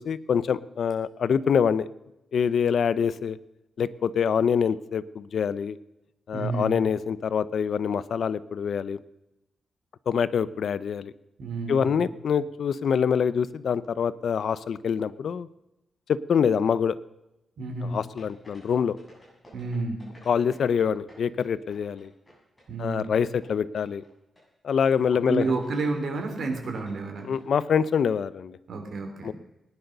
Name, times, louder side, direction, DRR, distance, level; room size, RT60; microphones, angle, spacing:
voice 1, 0.0-1.9 2.3-3.4 3.8-5.8 6.3-9.0 10.1-11.1 11.7-15.5 16.1-17.0 17.8-19.0 20.3-22.1 22.8-24.0 24.6-25.5 27.3-28.6 29.2-29.3, left 7 dB, 65° left, 17 dB, 0.6 m, -25 dB
voice 2, 6.3-6.8 11.4-12.1 17.6-18.0 19.5-20.1 22.7-23.2 25.2-27.3 28.7-29.3, right 3 dB, 65° right, 4 dB, 3.6 m, -30 dB
sound 1, 18.2-20.8 21.1-23.5 23.8-24.1 24.4-24.5 24.7-25.0 25.4-25.7 26.0-26.3 26.6-27.4, equal, 10° left, 7.6 m, -53 dB
20.0 x 10.5 x 6.7 m, 0.92 s
wide cardioid pair, 155°, 0 cm